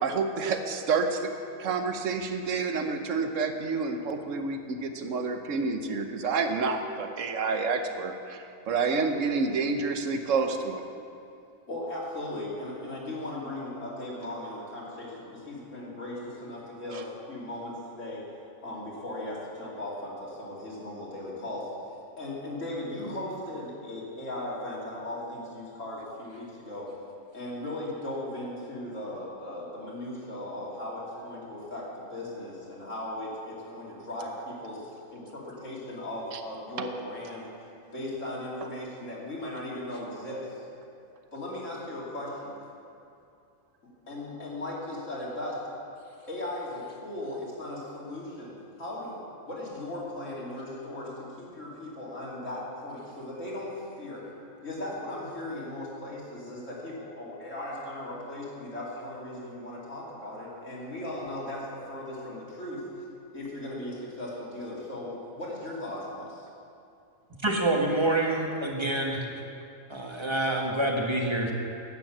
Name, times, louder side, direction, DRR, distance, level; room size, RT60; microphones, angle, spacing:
voice 1, 0.0-1.3 1.6-10.8 36.3-36.4, right 4 dB, 65° right, 6 dB, 1.3 m, -29 dB
voice 2, 11.7-18.2 18.6-21.7 22.2-26.9 27.3-37.5 37.9-40.6 41.3-42.5 44.1-45.6 46.3-49.2 49.5-54.3 54.6-62.8 63.3-66.5, left 1 dB, 65° left, -5 dB, 3.1 m, -37 dB
voice 3, 67.4-69.2 69.9-71.5, right 1 dB, 20° right, 0 dB, 1.4 m, -27 dB
11.0 x 9.1 x 7.4 m, 2.6 s
omnidirectional pair, 1.4 m